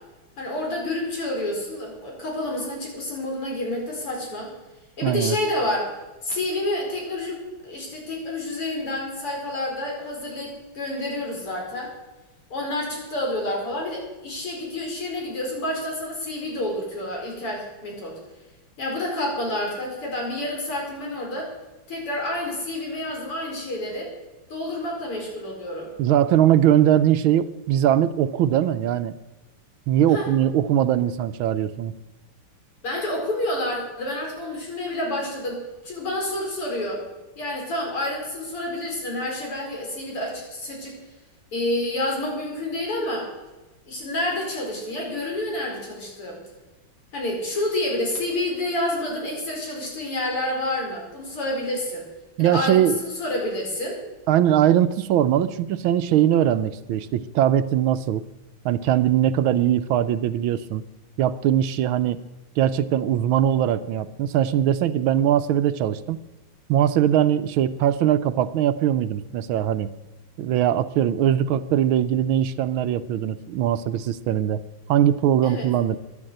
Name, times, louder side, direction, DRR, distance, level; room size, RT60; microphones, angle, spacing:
voice 1, 0.4-4.5 5.0-5.9 6.2-11.9 12.5-18.2 18.8-21.5 21.9-24.1 24.5-25.9 30.1-30.3 32.8-37.0 37.4-40.9 41.5-43.3 43.9-46.4 47.1-52.1 52.4-54.0 75.4-75.7, left 1 dB, 90° left, 0 dB, 5.6 m, -29 dB
voice 2, 5.0-5.4 26.0-29.1 29.9-31.9 52.4-53.0 54.3-58.2 58.6-60.8 61.2-62.2 62.6-66.2 66.7-69.9 70.4-74.6 74.9-76.0, right 11 dB, 75° right, 12 dB, 1.4 m, -21 dB
13.5 x 10.5 x 7.8 m, 1.1 s
omnidirectional pair, 2.4 m